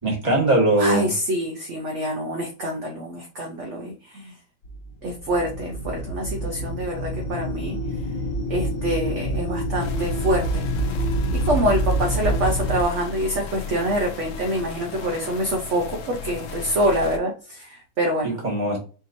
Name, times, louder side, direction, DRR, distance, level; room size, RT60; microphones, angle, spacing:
voice 1, 0.0-1.1 18.2-18.8, right 1 dB, 20° right, -3 dB, 1.4 m, -21 dB
voice 2, 0.8-4.3 5.0-7.8 8.5-10.7 11.3-18.4, right 1 dB, 50° right, 0 dB, 0.9 m, -26 dB
sound 1, 4.6-12.8, right 1 dB, 75° left, 1.5 m, -27 dB
sound 2, 9.8-17.2, left 5 dB, 90° left, 0.6 m, -34 dB
5.2 x 2.9 x 2.6 m, 0.36 s
omnidirectional pair, 2.1 m